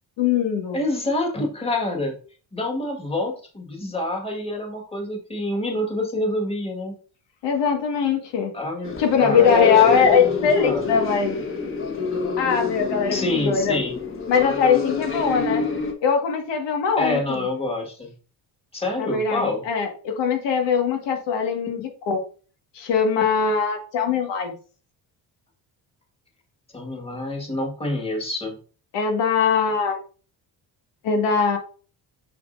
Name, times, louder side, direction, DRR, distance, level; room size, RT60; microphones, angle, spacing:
voice 1, 0.2-0.8 7.4-8.5 9.0-11.4 12.4-13.8 14.3-15.6 16.0-17.4 19.0-22.2 22.7-24.6 28.9-30.0 31.0-31.6, left 6 dB, 90° left, 3 dB, 2.0 m, -21 dB
voice 2, 0.7-2.2 2.5-6.9 8.5-8.9 9.2-10.1 10.6-10.8 13.1-14.0 17.0-18.2 18.7-19.6 26.7-28.6, left 2 dB, 15° left, 1 dB, 1.8 m, -27 dB
sound 1, 8.8-15.9, left 5 dB, 30° left, 1.5 m, -27 dB
6.7 x 6.3 x 2.7 m, 0.37 s
cardioid pair, 140°, 42 cm